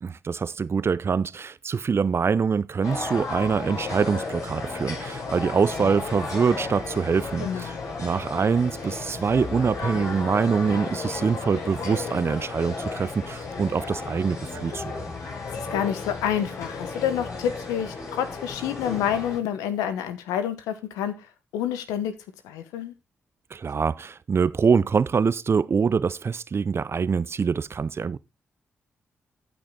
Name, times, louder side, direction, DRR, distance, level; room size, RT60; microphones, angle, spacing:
voice 1, 0.0-15.1 23.5-28.2, right 5 dB, 45° right, 0.6 m, -24 dB
sound 1, 2.8-19.4, left 4 dB, 65° left, 6.3 m, -34 dB
voice 2, 7.4-7.8 15.7-21.2 21.5-22.1 22.4-22.9, left 9 dB, 85° left, 1.2 m, -28 dB
13.5 x 6.1 x 3.8 m
hypercardioid pair, 40°, 6 cm